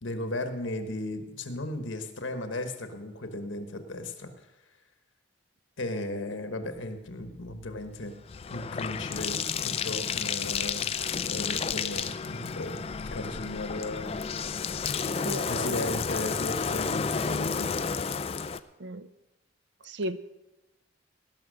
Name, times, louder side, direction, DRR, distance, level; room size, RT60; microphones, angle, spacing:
voice 1, 0.0-4.5 5.8-8.1 8.5-10.9 11.3-14.2 15.5-17.7, left 1 dB, 80° left, 7 dB, 1.3 m, -35 dB
Bathtub (filling or washing), 7.2-18.6, left 6 dB, 30° left, 0.3 m, -31 dB
voice 2, 15.0-15.9 18.8-19.1 19.8-20.2, right 1 dB, 65° right, 14 dB, 0.6 m, -36 dB
18.0 x 6.1 x 6.4 m, 1.0 s
head